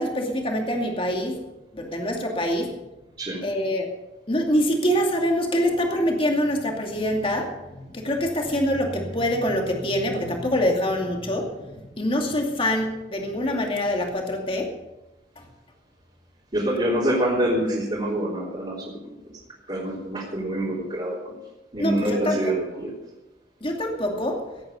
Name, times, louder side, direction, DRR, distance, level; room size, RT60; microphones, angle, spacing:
voice 1, 0.0-1.3 1.7-2.7 3.4-3.9 4.3-14.7 21.8-22.4 23.6-24.4, equal, 30° left, 2 dB, 2.4 m, -25 dB
voice 2, 16.5-19.0 19.7-21.3 21.7-22.9, right 1 dB, 30° right, -7 dB, 3.6 m, -26 dB
17.5 x 8.8 x 7.0 m, 1.0 s
head